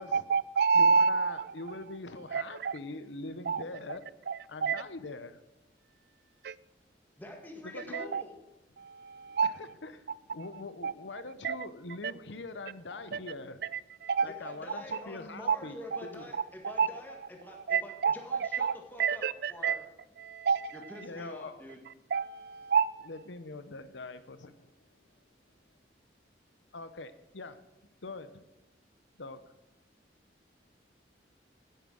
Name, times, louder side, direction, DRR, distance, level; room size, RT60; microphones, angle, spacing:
voice 1, 0.0-1.5 2.3-2.7 3.5-3.6 4.3-4.8 6.4-6.5 7.9-8.2 8.8-9.5 10.8-10.9 11.4-11.6 13.3-13.4 13.7-14.3 15.5-15.6 15.9-16.0 16.6-16.9 17.7-18.2 18.5-18.7 19.0-19.8 20.2-20.7 22.1-23.1, right 5 dB, 60° right, 0.4 m, -28 dB
voice 2, 0.7-4.1 4.5-5.4 7.6-8.1 9.2-13.6 14.2-16.3 21.0-21.6 23.1-24.7 26.7-27.6 28.0-28.4 29.2-29.4, left 3 dB, 80° left, 0.8 m, -43 dB
voice 3, 7.2-8.3 12.9-13.0 14.3-19.8 20.7-21.8, left 1 dB, 10° left, 1.8 m, -46 dB
9.4 x 9.3 x 6.4 m
head